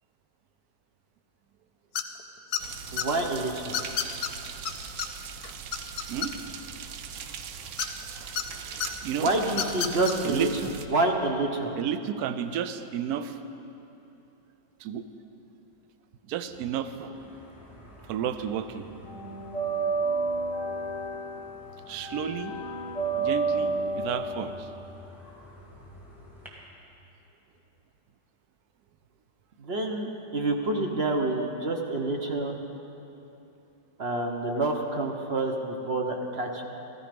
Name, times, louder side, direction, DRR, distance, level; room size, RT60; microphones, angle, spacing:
sound 1, 2.0-2.2 2.5-3.1 3.7-4.3 4.7-4.8 5.0-5.1 5.4-6.6 7.8-8.4 8.8-8.9 9.5-10.1, left 9 dB, 65° left, 1.1 m, -29 dB
sound 2, 2.6-10.9, right 7 dB, 85° right, 1.4 m, -40 dB
voice 1, 2.9-3.8 9.1-10.5 10.9-11.8 29.6-32.6 34.0-36.7, right 2 dB, 40° right, 2 dB, 1.0 m, -28 dB
voice 2, 8.8-9.3 10.2-10.7 11.8-13.4 14.8-15.1 16.2-17.2 18.1-18.9 21.9-22.5 23.2-24.7, right 9 dB, 70° right, 11 dB, 1.0 m, -32 dB
sound 3, 17.2-18.3 18.6-26.5, right 3 dB, ahead, 2.0 m, -31 dB
15.0 x 13.5 x 5.2 m, 2.9 s
omnidirectional pair, 2.0 m